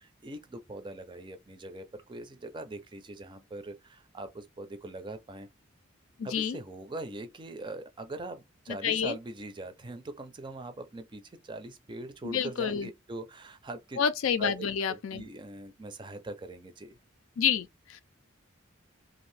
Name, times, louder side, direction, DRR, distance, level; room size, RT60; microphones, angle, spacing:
voice 1, 0.0-5.5 6.2-14.0 14.4-17.0, right 2 dB, 25° right, 0.4 m, -42 dB
voice 2, 6.2-6.6 8.8-9.2 12.2-12.9 14.0-15.2 17.4-18.0, left 7 dB, 80° left, 0.4 m, -29 dB
2.7 x 2.4 x 3.2 m
head